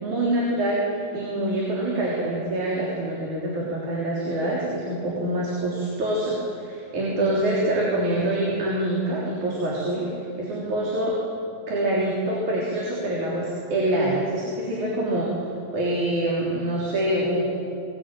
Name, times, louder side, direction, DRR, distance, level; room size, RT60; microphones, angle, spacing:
voice 1, 0.0-11.2 11.7-17.5, right 1 dB, 85° right, -4 dB, 5.1 m, -25 dB
23.5 x 20.0 x 9.1 m, 2.4 s
omnidirectional pair, 3.3 m